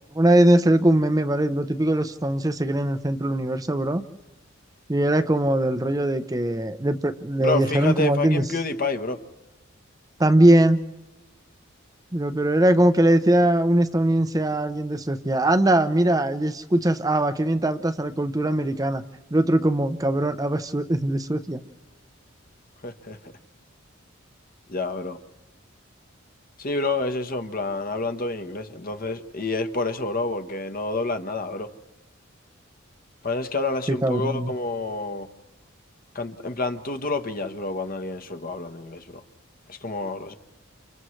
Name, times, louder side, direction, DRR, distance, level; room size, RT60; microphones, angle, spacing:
voice 1, 0.1-4.0 4.9-8.4 10.2-10.8 12.1-19.0 19.3-21.6 34.0-34.5, right 1 dB, 20° right, 0.7 m, -21 dB
voice 2, 7.4-9.2 22.8-23.2 24.7-25.2 26.6-31.7 33.2-35.3 36.1-39.2 39.7-40.4, left 3 dB, 45° left, 1.2 m, -28 dB
30.0 x 29.5 x 3.2 m
head